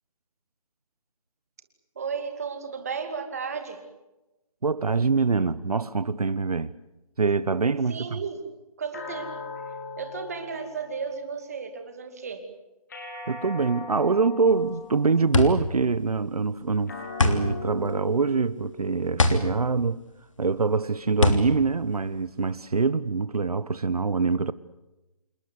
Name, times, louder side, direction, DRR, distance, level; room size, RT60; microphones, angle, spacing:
voice 1, 2.0-3.8 7.9-8.4 8.8-9.3 10.0-12.4, right 5 dB, 25° right, 2.5 m, -34 dB
voice 2, 4.6-6.7 7.2-8.2 13.3-20.0 20.4-24.5, right 4 dB, 80° right, 1.2 m, -24 dB
sound 1, 8.9-11.5 12.9-15.5 16.9-19.5, left 2 dB, 30° left, 5.2 m, -40 dB
sound 2, 14.5-22.9, left 2 dB, 55° left, 3.3 m, -26 dB
28.0 x 21.5 x 8.1 m
hypercardioid pair, 175°, 19 cm